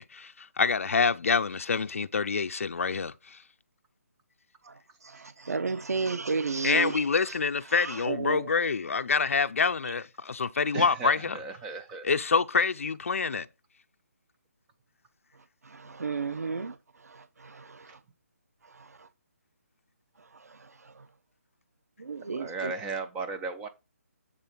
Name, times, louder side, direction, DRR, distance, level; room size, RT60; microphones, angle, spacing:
voice 1, 0.0-3.4 6.6-11.4 12.0-13.5, left 5 dB, 60° left, 0.6 m, -27 dB
voice 2, 4.6-7.4 7.7-8.5 15.3-18.0 18.6-19.1 20.2-21.1 22.0-22.7, right 4 dB, 85° right, 0.9 m, -34 dB
voice 3, 10.7-12.1 22.3-23.7, right 4 dB, 5° right, 0.3 m, -35 dB
8.8 x 3.7 x 5.8 m
hypercardioid pair, 175°, 8 cm